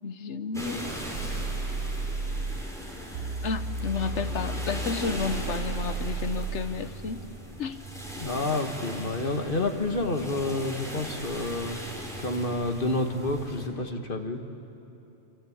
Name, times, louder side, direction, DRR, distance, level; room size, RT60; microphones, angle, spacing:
voice 1, 0.0-1.0 3.4-7.2 7.6-7.8, left 5 dB, 65° left, 10 dB, 1.3 m, -31 dB
sound 1, 0.5-13.7, equal, ahead, 4.7 m, -39 dB
sound 2, 1.2-2.6 3.1-6.6, right 3 dB, 85° right, 1.4 m, -32 dB
voice 2, 8.2-11.8 12.2-14.4, left 2 dB, 45° left, 4 dB, 1.9 m, -29 dB
27.5 x 24.5 x 8.7 m, 3.0 s
omnidirectional pair, 1.3 m